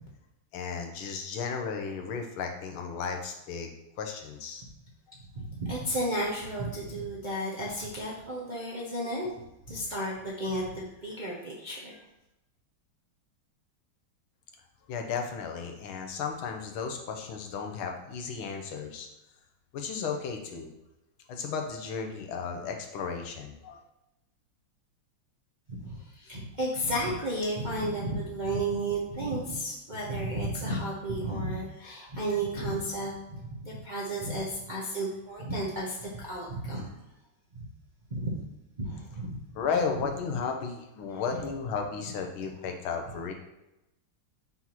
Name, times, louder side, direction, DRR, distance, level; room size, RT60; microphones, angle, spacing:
voice 1, 0.5-3.7 4.0-4.6 14.9-19.1 19.7-20.7 21.3-23.8 39.6-43.3, left 5 dB, 85° left, 4 dB, 1.7 m, -34 dB
voice 2, 5.3-9.3 9.7-12.0 25.7-33.1 33.4-37.0 37.5-37.6 38.1-38.4 38.8-39.4, right 1 dB, 45° right, -5 dB, 0.6 m, -33 dB
5.9 x 5.6 x 3.0 m, 0.92 s
omnidirectional pair, 2.3 m